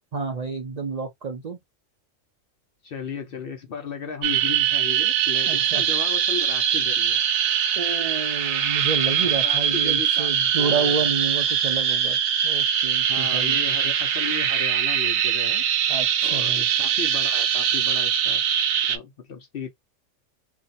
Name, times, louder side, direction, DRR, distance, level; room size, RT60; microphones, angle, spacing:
voice 1, 0.1-1.6 5.5-5.8 7.8-12.2 12.4-13.6 15.9-16.7, right 5 dB, 55° right, 0.4 m, -29 dB
voice 2, 2.8-7.2 9.2-10.3 10.6-11.1 13.1-15.7 16.2-19.7, left 6 dB, 60° left, 0.6 m, -35 dB
sound 1, 4.2-19.0, right 9 dB, 85° right, 1.0 m, -22 dB
2.7 x 2.1 x 3.9 m
omnidirectional pair, 1.4 m